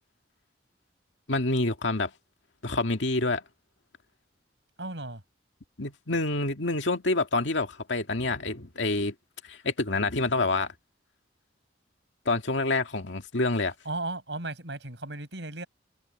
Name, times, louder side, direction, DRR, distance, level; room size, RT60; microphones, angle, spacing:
voice 1, 1.3-2.1 2.6-3.4 5.8-9.1 9.5-10.7 12.3-13.7, left 2 dB, 85° left, 2.2 m, -27 dB
voice 2, 4.8-5.2 13.8-15.7, right 2 dB, 75° right, 6.5 m, -35 dB
head